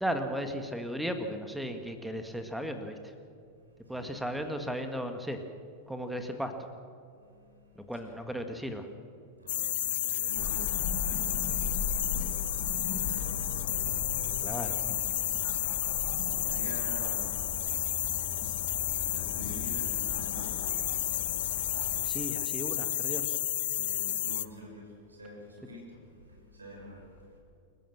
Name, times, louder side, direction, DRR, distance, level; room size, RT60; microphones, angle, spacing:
voice 1, 0.0-3.0 3.9-5.4 5.9-6.5 7.8-8.9 14.4-14.8 22.0-23.4, equal, 5° right, 6 dB, 2.0 m, -35 dB
voice 2, 3.7-4.1 7.2-8.5 9.2-14.5 15.4-22.2 23.7-27.4, equal, 80° right, 0 dB, 6.3 m, -49 dB
sound 1, 9.5-24.5, left 12 dB, 60° left, 0.6 m, -32 dB
Cricket / Motor vehicle (road), 10.4-22.1, left 4 dB, 40° left, 3.1 m, -39 dB
29.0 x 15.0 x 6.2 m, 2.5 s
figure-of-eight pair, 90°, 0 cm